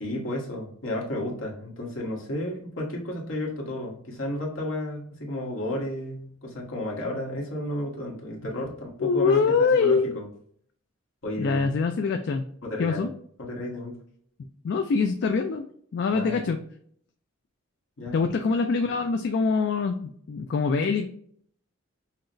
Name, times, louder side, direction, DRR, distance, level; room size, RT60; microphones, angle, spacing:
voice 1, 0.0-10.3 11.2-11.7 12.6-13.1 13.4-14.0 16.1-16.5 18.0-18.2, left 1 dB, 70° left, -2 dB, 1.2 m, -32 dB
voice 2, 9.0-10.1 11.4-12.5 12.8-13.1 14.6-15.6 15.9-16.6 18.1-21.1, left 4 dB, 55° left, 6 dB, 0.3 m, -24 dB
5.8 x 2.1 x 2.5 m, 0.62 s
head